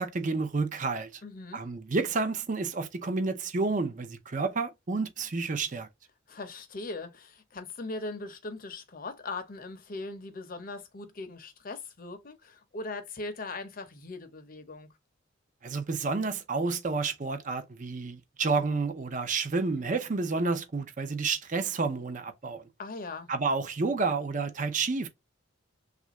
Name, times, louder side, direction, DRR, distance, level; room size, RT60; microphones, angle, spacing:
voice 1, 0.0-1.2 1.5-5.9 15.6-22.7 23.3-25.1, right 4 dB, 40° right, 0.6 m, -30 dB
voice 2, 1.2-1.6 6.3-14.9 22.8-23.3, left 3 dB, 45° left, 0.6 m, -40 dB
3.3 x 2.5 x 2.9 m
head